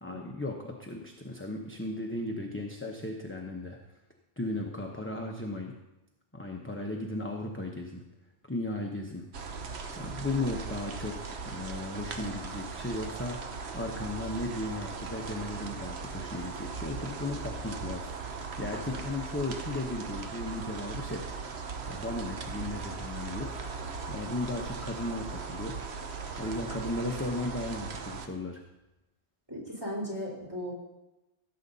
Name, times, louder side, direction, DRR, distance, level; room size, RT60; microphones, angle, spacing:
voice 1, 0.0-3.8 4.4-5.7 6.3-8.0 8.5-9.3 10.0-21.3 21.9-23.6 24.1-25.8 26.4-28.6, left 2 dB, 10° left, 1 dB, 0.8 m, -36 dB
sound 1, 9.3-28.3, right 5 dB, 65° right, 1.1 m, -39 dB
voice 2, 29.5-30.7, equal, 20° right, -5 dB, 3.8 m, -37 dB
17.0 x 7.8 x 4.1 m, 0.99 s
omnidirectional pair, 1.2 m